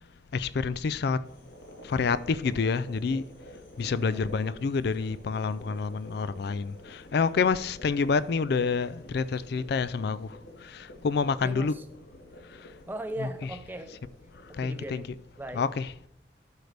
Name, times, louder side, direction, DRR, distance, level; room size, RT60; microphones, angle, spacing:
voice 1, 0.3-1.2 1.8-3.3 3.8-11.8 12.4-12.8 13.2-13.6 14.4-15.2 15.5-16.1, left 5 dB, 60° left, 0.4 m, -28 dB
sound 1, 1.2-15.5, equal, 85° left, 3.2 m, -50 dB
voice 2, 3.9-4.2 11.4-11.8 12.9-13.9 14.5-15.7, right 1 dB, 10° right, 0.6 m, -39 dB
12.0 x 6.5 x 3.4 m
head